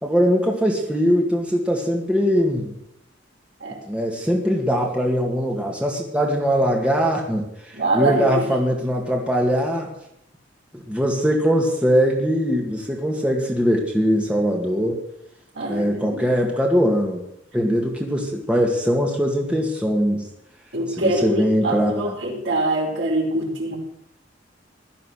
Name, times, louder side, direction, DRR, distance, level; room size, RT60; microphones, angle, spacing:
voice 1, 0.0-2.7 3.9-9.9 10.7-15.0 15.7-17.2 17.5-20.2 21.0-22.1, equal, 5° right, 0 dB, 2.0 m, -21 dB
voice 2, 7.7-8.5 15.5-16.2 20.7-23.8, right 1 dB, 70° right, -1 dB, 5.0 m, -24 dB
16.5 x 12.5 x 6.5 m, 0.77 s
head